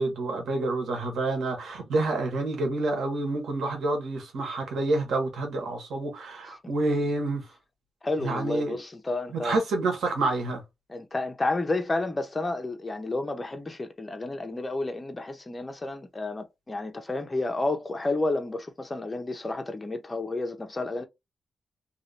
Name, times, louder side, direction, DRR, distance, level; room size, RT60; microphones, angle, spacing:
voice 1, 0.0-7.4 8.2-8.8 9.4-10.6, right 2 dB, 90° right, 1.5 m, -28 dB
voice 2, 8.0-9.6 10.9-21.1, left 2 dB, 25° left, 0.9 m, -31 dB
3.0 x 2.9 x 2.8 m
cardioid pair, 95°, 0 cm